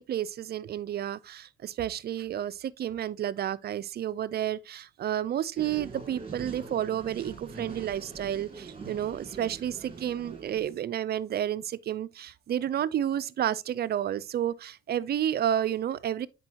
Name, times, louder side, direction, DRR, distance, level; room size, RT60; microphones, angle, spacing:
voice 1, 0.0-16.3, right 10 dB, 50° right, 0.5 m, -31 dB
sound 1, 5.6-10.7, right 4 dB, 30° right, 2.3 m, -43 dB
9.5 x 4.6 x 2.8 m
supercardioid pair, 70°, 21 cm